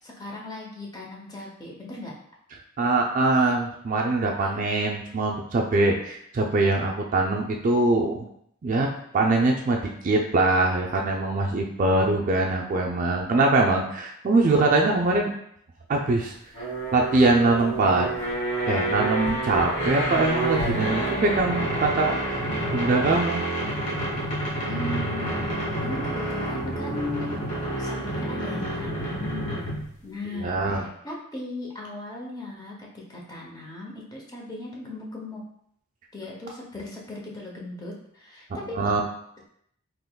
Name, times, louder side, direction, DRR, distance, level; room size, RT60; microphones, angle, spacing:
voice 1, 0.0-2.1 4.4-4.5 24.7-27.4 27.8-35.4 36.1-38.9, left 2 dB, 20° left, -2 dB, 0.6 m, -37 dB
voice 2, 2.8-8.3 8.6-8.9 9.1-15.3 15.9-16.3 16.9-18.1 18.7-22.4 22.7-23.4 30.4-30.8 38.7-39.0, right 2 dB, 40° right, 1 dB, 0.3 m, -23 dB
sound 1, 16.5-29.9, right 1 dB, 35° left, 1.4 m, -28 dB
3.5 x 3.0 x 2.2 m, 0.70 s
head